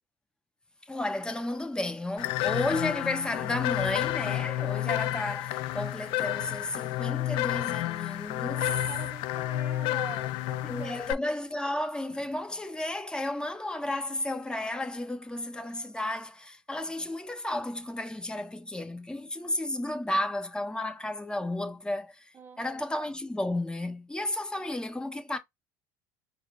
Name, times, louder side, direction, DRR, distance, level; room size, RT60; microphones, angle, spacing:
voice 1, 0.9-8.8 10.6-25.4, left 1 dB, 10° left, 0.9 m, -33 dB
sound 1, 2.2-11.1, left 15 dB, 65° left, 0.4 m, -30 dB
voice 2, 8.5-11.1 22.3-22.8, right 5 dB, 20° right, 0.4 m, -44 dB
4.8 x 2.0 x 3.6 m
supercardioid pair, 85°, 10 cm